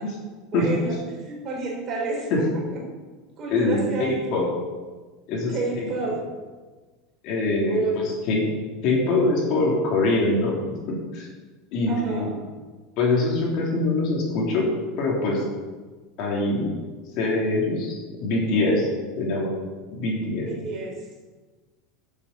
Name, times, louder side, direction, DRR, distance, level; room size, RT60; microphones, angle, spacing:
voice 1, 0.5-2.8 3.4-4.2 5.5-6.2 7.7-8.0 11.9-12.3 20.4-21.0, right 3 dB, 30° right, -1 dB, 3.8 m, -30 dB
voice 2, 3.5-4.5 5.3-6.1 7.2-7.8 8.3-8.4 8.8-10.5 10.9-11.3 11.7-12.3 13.0-14.7 15.0-15.4 16.2-16.7 17.2-18.9 19.2-19.5 19.9-20.5, left 2 dB, 50° left, -2 dB, 3.2 m, -23 dB
10.5 x 7.3 x 6.8 m, 1.3 s
supercardioid pair, 155°, 0 cm